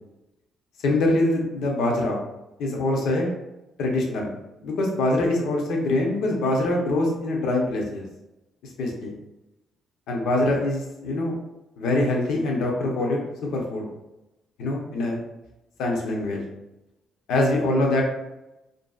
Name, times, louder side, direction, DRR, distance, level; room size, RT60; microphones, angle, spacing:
voice 1, 0.8-2.2 2.6-3.3 3.8-4.3 4.6-8.0 8.8-9.1 10.1-11.3 11.8-13.2 13.5-13.9 14.6-15.2 15.8-16.4 17.3-18.0, left 2 dB, 85° left, 0 dB, 0.6 m, -24 dB
2.6 x 2.6 x 2.3 m, 0.96 s
cardioid pair, 90°, 0 cm